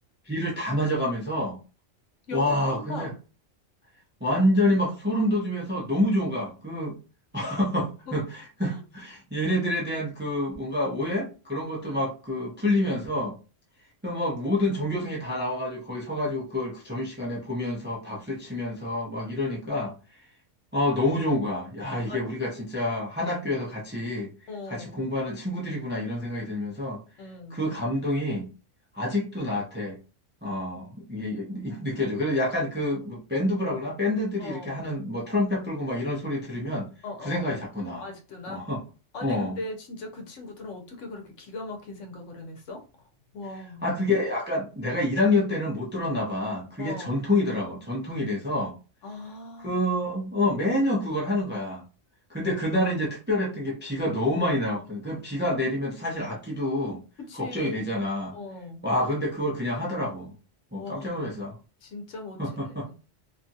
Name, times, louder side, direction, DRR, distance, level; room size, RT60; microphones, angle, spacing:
voice 1, 0.3-1.6 2.3-3.1 4.2-7.0 7.3-13.4 14.0-20.0 20.7-24.3 24.7-27.0 27.5-28.5 28.9-30.0 30.4-36.9 37.2-38.0 38.5-38.8 39.2-39.6 43.8-48.7 49.6-51.8 52.3-57.0 57.3-58.3 58.8-60.3 60.7-61.6 62.4-62.9, left 1 dB, 15° right, 0.4 m, -27 dB
voice 2, 2.3-3.2 8.1-8.2 8.6-8.8 11.8-12.0 22.1-22.2 24.5-24.9 27.2-27.6 34.4-34.7 37.0-37.4 38.0-38.6 39.1-43.1 43.3-44.0 46.8-47.2 49.0-49.8 57.3-57.9 58.3-58.8 60.8-61.3 61.8-62.4, left 2 dB, 75° left, 1.1 m, -39 dB
2.8 x 2.4 x 2.6 m
omnidirectional pair, 1.3 m